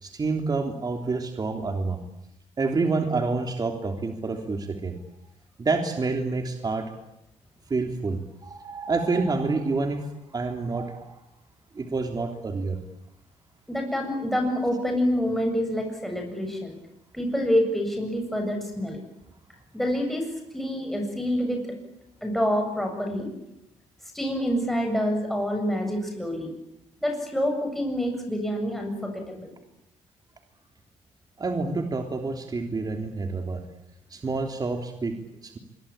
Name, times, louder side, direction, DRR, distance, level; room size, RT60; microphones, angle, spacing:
voice 1, 0.0-2.0 2.6-4.9 5.6-6.9 7.7-11.1 11.7-12.8 31.4-33.6 34.1-35.1 35.4-35.6, right 3 dB, 30° right, 4 dB, 3.2 m, -28 dB
voice 2, 13.7-16.8 17.1-19.0 19.7-21.6 22.2-23.3 24.1-26.5 27.0-29.5, equal, ahead, 2 dB, 7.7 m, -27 dB
25.5 x 23.5 x 8.9 m, 0.82 s
cardioid pair, 100°, 12 cm